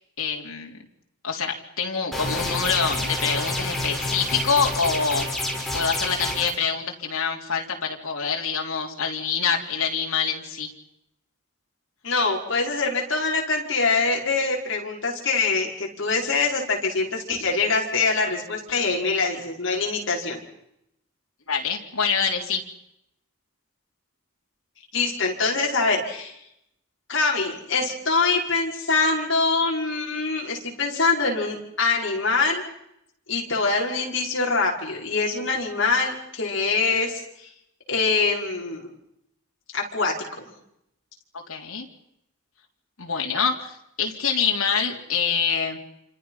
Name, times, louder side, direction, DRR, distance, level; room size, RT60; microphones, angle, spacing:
voice 1, 0.2-0.8 1.2-5.3 5.7-10.7 21.5-22.6 41.5-41.9 43.0-43.7 44.0-45.8, left 6 dB, 85° left, 1 dB, 3.5 m, -25 dB
sound 1, 2.1-6.5, left 1 dB, ahead, 5.8 m, -28 dB
voice 2, 12.0-20.4 24.9-26.4 27.1-32.6 33.3-37.5 37.9-38.9 39.7-40.5, left 4 dB, 60° left, -1 dB, 5.6 m, -24 dB
28.5 x 26.5 x 5.9 m, 0.80 s
head